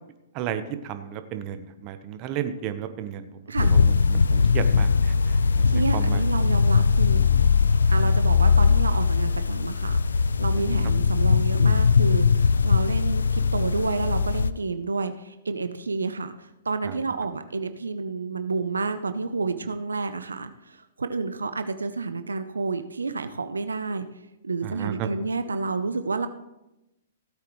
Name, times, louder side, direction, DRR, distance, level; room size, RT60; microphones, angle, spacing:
voice 1, 0.3-6.2 10.5-10.6 16.8-17.0 24.6-25.1, right 10 dB, 40° right, 9 dB, 1.0 m, -33 dB
voice 2, 3.5-3.8 5.7-7.4 7.9-24.1 24.4-26.3, right 4 dB, 90° right, 10 dB, 0.7 m, -30 dB
sound 1, 3.6-14.5, left 5 dB, 85° left, 0.4 m, -20 dB
16.5 x 8.3 x 3.2 m, 0.93 s
hypercardioid pair, 120°, 0 cm